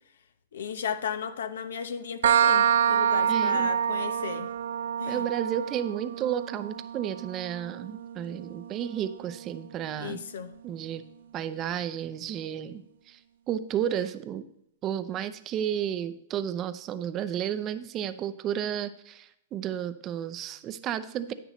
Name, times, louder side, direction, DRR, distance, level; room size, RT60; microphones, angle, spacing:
voice 1, 0.5-4.5 5.0-5.3 10.0-10.6, left 7 dB, 75° left, 0.8 m, -35 dB
sound 1, 2.2-9.7, right 8 dB, 70° right, 0.3 m, -27 dB
voice 2, 3.3-3.7 5.1-10.2 10.6-11.0 11.3-13.2 13.5-14.5 14.8-21.3, right 10 dB, 30° right, 0.7 m, -32 dB
10.0 x 9.0 x 3.1 m
hypercardioid pair, 120°, 0 cm